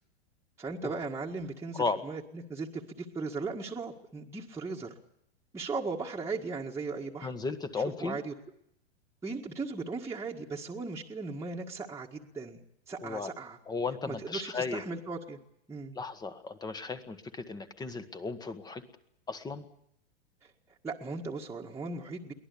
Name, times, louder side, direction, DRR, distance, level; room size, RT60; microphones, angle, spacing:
voice 1, 0.6-4.9 5.5-7.3 8.0-8.3 9.2-12.6 12.9-13.6 14.1-15.4 15.7-15.9 20.8-22.3, right 4 dB, 10° right, -2 dB, 1.8 m, -37 dB
voice 2, 7.2-8.2 13.0-13.3 13.7-14.8 15.9-18.8 19.3-19.6, left 4 dB, 10° left, 10 dB, 1.5 m, -35 dB
23.0 x 18.0 x 8.5 m, 0.75 s
hypercardioid pair, 135°, 33 cm